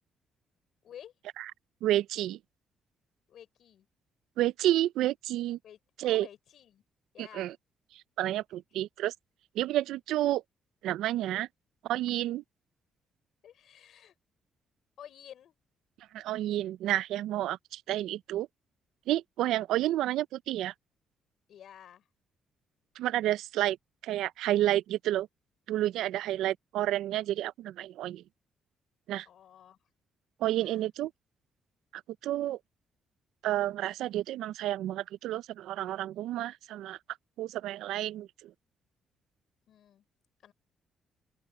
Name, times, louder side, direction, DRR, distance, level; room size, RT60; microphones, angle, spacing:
voice 1, 1.8-2.4 4.4-5.6 6.0-6.3 7.2-7.5 7.9-9.1 9.6-10.4 10.8-11.5 11.8-12.4 16.1-18.5 19.1-20.7 23.0-23.8 24.0-25.3 25.7-28.2 29.1-29.3 30.4-31.1 32.2-32.6 33.4-37.0 37.4-38.5, right 14 dB, 85° right, 0.4 m, -30 dB
voice 2, 3.3-3.9 5.6-6.8 7.1-7.5 8.5-8.6 13.4-14.1 15.0-15.6 21.5-22.1 29.2-29.8 30.6-30.8 39.7-40.0 40.4-40.5, left 10 dB, 70° left, 4.3 m, -51 dB
open air
cardioid pair, 90°, 0 cm